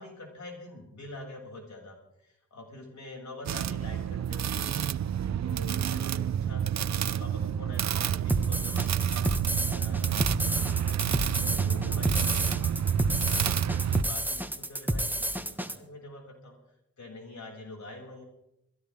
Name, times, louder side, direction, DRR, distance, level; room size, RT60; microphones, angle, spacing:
voice 1, 0.0-9.4 9.7-11.3 11.6-12.7 13.2-18.2, left 2 dB, 70° left, 0 dB, 7.0 m, -46 dB
sound 1, 3.5-14.0, right 9 dB, 65° right, 0.6 m, -29 dB
sound 2, 8.3-15.8, right 1 dB, 5° right, 1.6 m, -30 dB
22.5 x 17.0 x 3.7 m, 0.83 s
cardioid pair, 60°, 29 cm